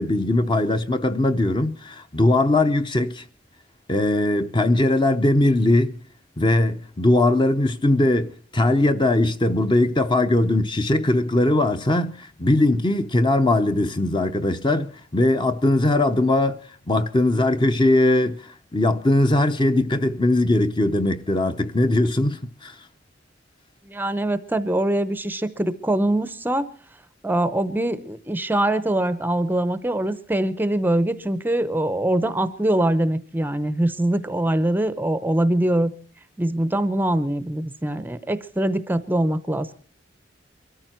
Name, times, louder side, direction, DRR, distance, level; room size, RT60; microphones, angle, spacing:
voice 1, 0.0-3.2 3.9-6.0 6.4-16.6 16.9-22.7, left 2 dB, 25° left, 0.8 m, -20 dB
voice 2, 23.9-26.7 27.2-35.9 36.4-39.7, right 1 dB, 10° right, 0.7 m, -23 dB
23.5 x 14.0 x 4.4 m
head